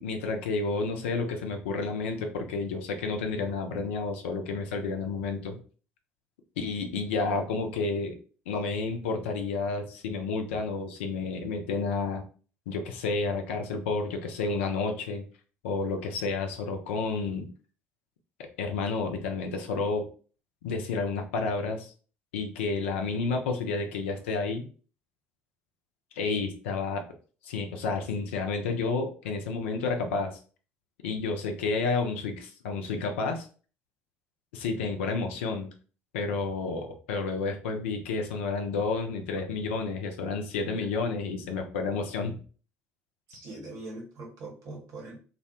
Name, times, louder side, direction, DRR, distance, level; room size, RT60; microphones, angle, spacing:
voice 1, 0.0-5.6 6.6-8.2 8.5-12.2 12.7-15.2 15.6-17.5 18.4-20.1 20.6-21.9 22.3-24.6 26.2-27.0 27.4-30.4 31.0-33.5 34.5-35.7 36.1-42.3, left 4 dB, 70° left, 4 dB, 0.4 m, -30 dB
voice 2, 43.3-45.2, right 2 dB, 50° right, -1 dB, 1.0 m, -42 dB
2.5 x 2.1 x 2.7 m, 0.39 s
figure-of-eight pair, 55°, 7 cm